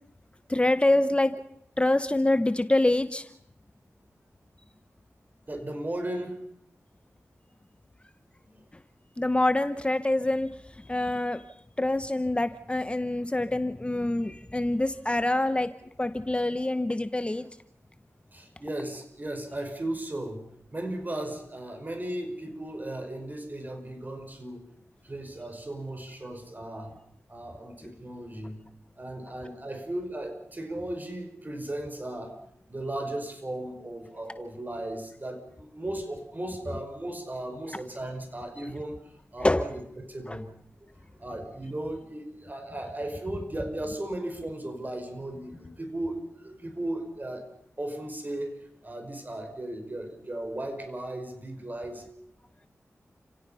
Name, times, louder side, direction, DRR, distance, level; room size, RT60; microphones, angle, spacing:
voice 1, 0.5-1.4 1.8-3.2 9.2-10.5 10.9-11.4 11.8-15.7 16.0-17.5 39.4-39.7 40.3-40.4, left 1 dB, 20° left, 11 dB, 0.9 m, -25 dB
voice 2, 5.5-6.4 8.4-8.6 18.3-24.6 25.0-26.9 27.3-28.6 29.0-32.4 32.7-39.0 39.3-40.5 41.1-47.5 47.8-52.1, right 1 dB, 35° right, 5 dB, 5.1 m, -36 dB
29.5 x 17.0 x 5.6 m, 0.71 s
cardioid pair, 50°, 5 cm